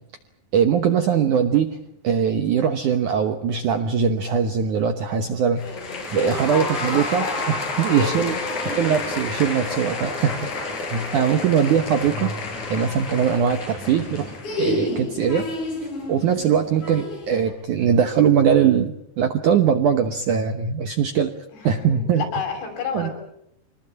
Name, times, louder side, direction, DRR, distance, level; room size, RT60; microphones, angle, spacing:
voice 1, 0.5-5.7 6.1-8.3 8.8-10.5 10.9-12.3 12.7-15.5 16.1-21.3 21.6-22.2 22.9-23.1, right 7 dB, 70° right, 8 dB, 1.9 m, -21 dB
voice 2, 5.6-7.5 7.8-9.3 11.2-11.6 21.5-23.1, left 4 dB, 80° left, 5 dB, 8.2 m, -32 dB
sound 1, 5.6-17.5, left 2 dB, 45° left, 6.6 m, -30 dB
25.5 x 20.5 x 8.7 m, 0.75 s
omnidirectional pair, 5.1 m